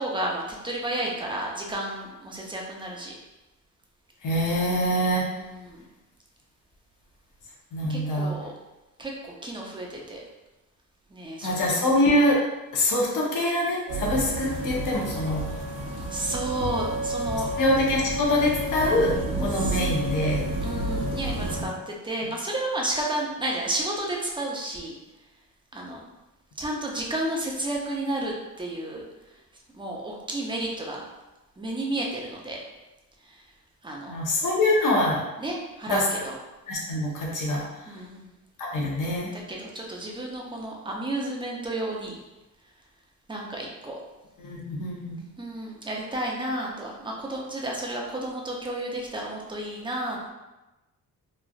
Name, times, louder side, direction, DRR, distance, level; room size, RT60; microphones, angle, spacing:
voice 1, 0.0-3.1 5.2-5.8 7.9-8.5 9.0-10.2 11.1-11.8 16.1-17.5 19.5-19.8 20.6-24.9 25.7-26.0 26.6-29.0 29.7-31.0 31.6-32.6 33.8-34.2 35.4-36.3 37.9-38.3 39.3-42.2 43.3-44.0 45.4-50.3, right 1 dB, 15° right, -2 dB, 0.5 m, -32 dB
voice 2, 4.2-5.2 7.7-8.3 11.4-12.4 12.7-15.4 17.6-20.4 34.1-35.2 35.9-36.0 36.7-37.6 38.6-39.3 44.4-45.2, left 1 dB, 60° left, -4 dB, 0.9 m, -24 dB
sound 1, 13.9-21.6, right 1 dB, 65° right, 0.8 m, -30 dB
3.2 x 2.4 x 2.3 m, 1.0 s
cardioid pair, 105°, 34 cm